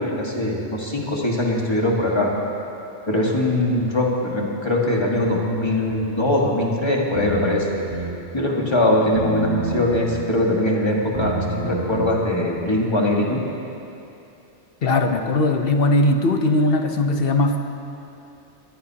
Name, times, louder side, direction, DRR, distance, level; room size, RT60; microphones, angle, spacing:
voice 1, 0.0-2.3 3.1-7.7 7.9-8.1 8.3-13.4, left 1 dB, 25° left, -2 dB, 1.8 m, -21 dB
sound 1, 5.2-6.1 7.1-8.2 9.2-10.1 11.1-12.1, right 1 dB, 85° right, 2.5 m, -28 dB
voice 2, 14.8-17.6, left 2 dB, 60° left, 5 dB, 1.1 m, -19 dB
22.0 x 15.0 x 2.9 m, 2.8 s
omnidirectional pair, 1.2 m